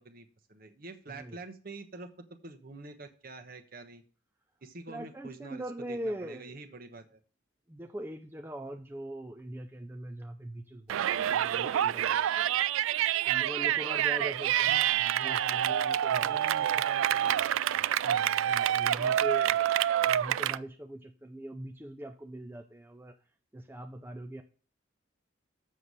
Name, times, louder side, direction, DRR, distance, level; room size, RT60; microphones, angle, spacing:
voice 1, 0.0-4.0 4.6-5.6 5.9-7.2 14.7-15.8 16.1-18.1 18.9-19.2 19.4-19.6, right 3 dB, 45° right, 8 dB, 1.1 m, -46 dB
voice 2, 4.9-6.6 7.7-12.6 13.2-16.4 16.7-16.8 18.0-23.2 23.5-24.4, right 1 dB, 10° right, 6 dB, 0.5 m, -42 dB
Yell, 10.9-20.6, right 11 dB, 80° right, 0.3 m, -27 dB
7.7 x 6.5 x 5.4 m, 0.39 s
head